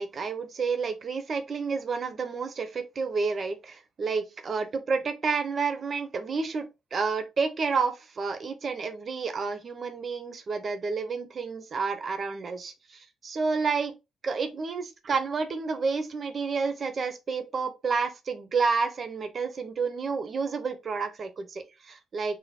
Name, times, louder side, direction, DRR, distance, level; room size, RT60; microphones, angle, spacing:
voice 1, 0.0-13.9 14.2-22.4, right 4 dB, 45° right, 0.8 m, -30 dB
4.2 x 2.1 x 4.1 m
cardioid pair, 90°, 0 cm